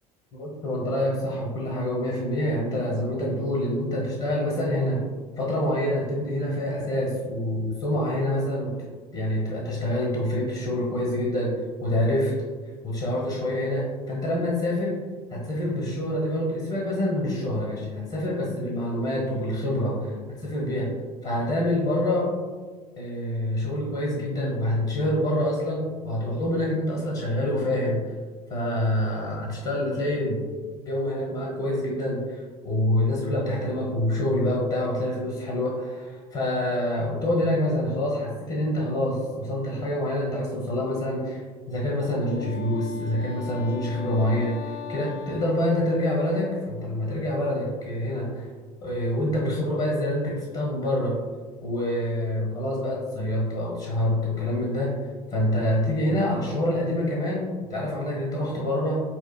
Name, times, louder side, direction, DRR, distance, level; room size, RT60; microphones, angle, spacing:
voice 1, 0.4-5.0 5.4-8.8 9.1-11.6 11.8-12.3 12.8-15.0 15.3-20.9 21.2-22.3 23.0-28.0 28.5-30.4 30.9-48.5 48.8-51.2 51.6-55.0 55.3-59.0, left 1 dB, 45° left, -3 dB, 1.0 m, -26 dB
Wind instrument woodwind instrument, 42.0-46.7, left 7 dB, 75° left, 0.4 m, -39 dB
5.6 x 2.5 x 2.3 m, 1.5 s
hypercardioid pair, 70°, 19 cm